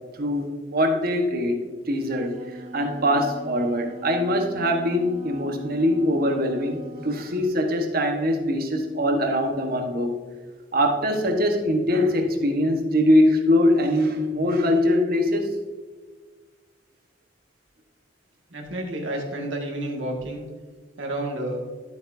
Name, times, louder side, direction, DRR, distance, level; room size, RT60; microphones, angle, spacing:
voice 1, 0.2-1.6 1.9-2.4 2.7-10.1 10.7-15.5, left 1 dB, 55° right, 3 dB, 1.3 m, -22 dB
Wind instrument woodwind instrument, 2.1-7.3, right 2 dB, 35° right, 1.2 m, -41 dB
voice 2, 18.5-20.5 21.0-21.6, right 1 dB, 90° right, 0 dB, 1.9 m, -30 dB
12.0 x 8.2 x 2.7 m, 1.4 s
head